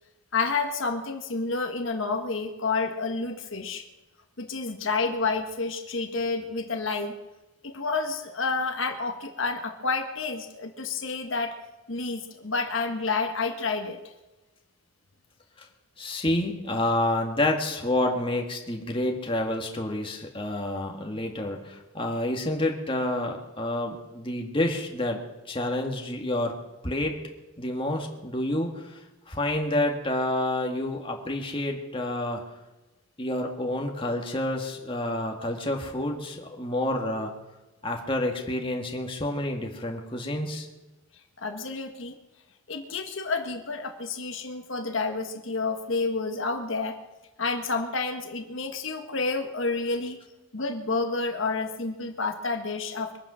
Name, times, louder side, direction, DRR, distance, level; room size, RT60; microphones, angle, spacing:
voice 1, 0.3-3.8 4.4-7.2 7.6-11.6 11.9-14.0 41.4-42.1 42.7-47.0 47.4-50.2 50.5-53.2, left 4 dB, 70° left, 4 dB, 1.4 m, -29 dB
voice 2, 16.0-25.2 25.5-26.5 26.8-27.1 27.6-29.0 29.3-32.4 33.2-37.3 37.8-40.7, left 1 dB, 25° left, 2 dB, 1.9 m, -29 dB
23.0 x 9.2 x 6.3 m, 1.1 s
head